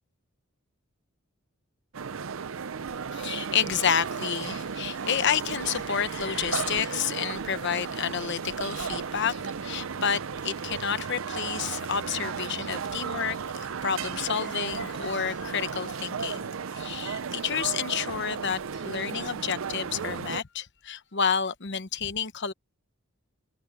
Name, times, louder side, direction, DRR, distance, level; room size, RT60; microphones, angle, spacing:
sound 1, 1.9-20.4, right 6 dB, 70° right, 0.6 m, -34 dB
voice 1, 3.1-22.5, left 7 dB, 60° left, 1.0 m, -30 dB
head